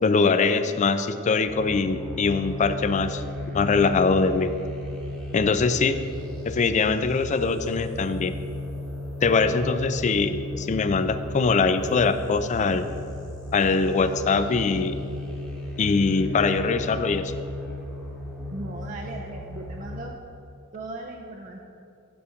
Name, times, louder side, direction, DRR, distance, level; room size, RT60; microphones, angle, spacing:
voice 1, 0.0-3.2 3.5-4.6 5.3-6.1 6.5-8.3 9.2-12.9 13.5-15.0 15.8-17.3, left 4 dB, 35° left, 11 dB, 0.4 m, -22 dB
sound 1, 1.5-20.0, left 1 dB, 5° left, 1.1 m, -35 dB
voice 2, 18.5-20.1 20.7-21.6, right 2 dB, 40° right, 0 dB, 0.5 m, -37 dB
7.0 x 5.0 x 7.0 m, 2.7 s
head